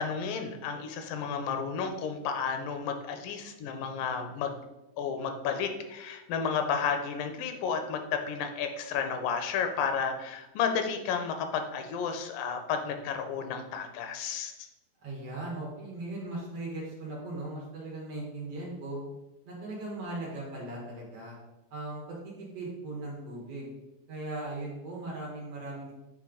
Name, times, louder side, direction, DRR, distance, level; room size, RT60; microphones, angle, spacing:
voice 1, 0.0-4.5 5.0-14.5, left 6 dB, 90° left, 6 dB, 2.3 m, -32 dB
voice 2, 15.0-19.0 19.5-21.4 21.7-23.7 24.1-25.9, right 2 dB, 55° right, -4 dB, 2.0 m, -38 dB
8.6 x 3.2 x 3.7 m, 0.98 s
omnidirectional pair, 3.8 m